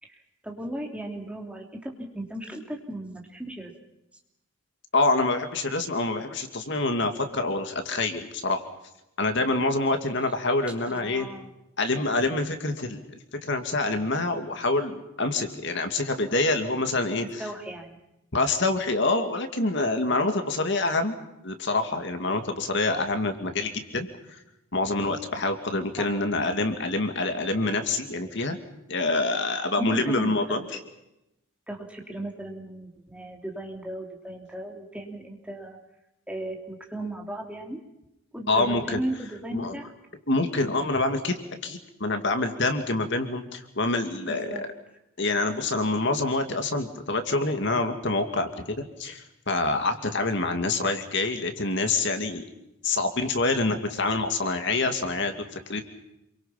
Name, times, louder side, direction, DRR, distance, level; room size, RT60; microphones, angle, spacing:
voice 1, 0.0-3.7 10.8-11.5 17.4-18.0 26.0-26.1 29.8-30.6 31.7-35.8 36.3-37.8 38.3-39.9 44.3-44.6, right 1 dB, 5° right, 1 dB, 3.1 m, -36 dB
voice 2, 4.9-8.6 9.2-11.3 11.8-13.0 13.4-17.4 18.3-21.1 21.4-24.4 24.7-28.6 28.9-30.8 38.5-39.0 39.5-39.7 40.3-44.6 45.2-52.4 52.8-55.8, left 2 dB, 55° left, 6 dB, 2.4 m, -26 dB
28.0 x 24.0 x 5.9 m, 0.88 s
head